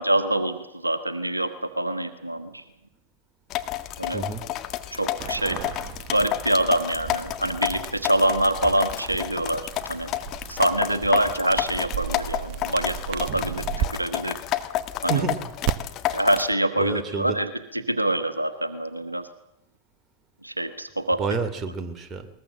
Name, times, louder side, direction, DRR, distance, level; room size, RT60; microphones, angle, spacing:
voice 1, 0.0-2.6 4.0-4.2 4.9-5.6 6.1-10.1 10.5-14.4 15.0-15.2 16.1-19.3 20.4-21.2, right 1 dB, 85° right, 10 dB, 1.4 m, -25 dB
sound 1, 3.5-16.5, left 13 dB, 35° left, 1.7 m, -31 dB
voice 2, 4.1-4.5 15.0-15.5 16.8-17.4 21.2-22.3, right 5 dB, 25° right, 9 dB, 2.8 m, -29 dB
sound 2, 5.2-13.9 15.6-15.7, right 9 dB, 45° right, 1.1 m, -34 dB
21.0 x 20.5 x 7.7 m, 0.89 s
figure-of-eight pair, 90°, 0 cm